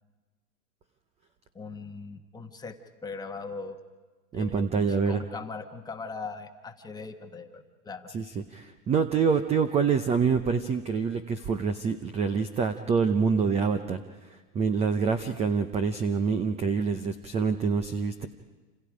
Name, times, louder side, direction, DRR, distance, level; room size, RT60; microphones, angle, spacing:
voice 1, 1.5-2.8 3.0-3.8 4.3-8.1, left 4 dB, 10° left, 4 dB, 1.4 m, -40 dB
voice 2, 4.3-5.2 8.1-14.0 14.5-18.3, right 5 dB, 15° right, 10 dB, 0.6 m, -26 dB
28.0 x 28.0 x 5.0 m, 1.3 s
hypercardioid pair, 135°, 45 cm